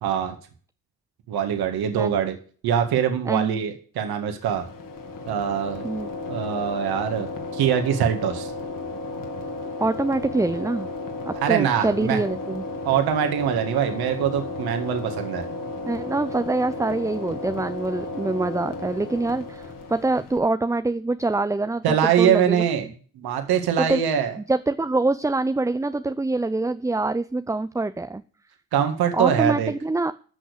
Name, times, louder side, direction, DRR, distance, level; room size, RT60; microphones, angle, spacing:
voice 1, 0.0-0.3 1.3-2.4 2.6-4.6 5.3-5.9 6.3-7.3 7.5-8.5 11.4-12.2 12.8-15.5 21.8-22.9 23.2-24.3 28.7-29.7, right 9 dB, 60° right, 6 dB, 2.2 m, -23 dB
voice 2, 3.3-3.6 5.8-6.1 9.8-10.9 11.3-12.6 15.9-22.6 23.8-24.0 24.4-28.2 29.1-30.1, right 2 dB, 10° right, 12 dB, 0.6 m, -25 dB
sound 1, 4.4-20.4, left 3 dB, 50° left, 2.8 m, -34 dB
13.5 x 6.3 x 6.8 m, 0.42 s
hypercardioid pair, 60°, 42 cm